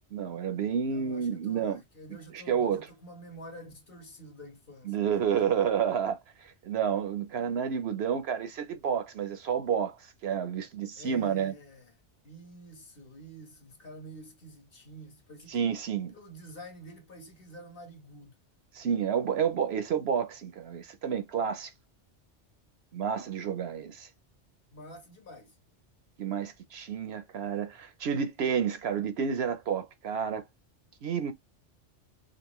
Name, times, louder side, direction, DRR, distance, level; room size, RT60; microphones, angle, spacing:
voice 1, 0.1-1.8 2.3-2.9 4.9-10.0 10.2-11.5 15.5-16.1 18.7-21.7 22.9-24.1 26.2-30.4 31.0-31.3, right 7 dB, 65° right, 0.8 m, -30 dB
voice 2, 0.8-5.7 11.0-15.6 16.1-18.4 24.7-25.6, equal, 50° left, 1.5 m, -48 dB
5.2 x 2.5 x 3.0 m
omnidirectional pair, 1.2 m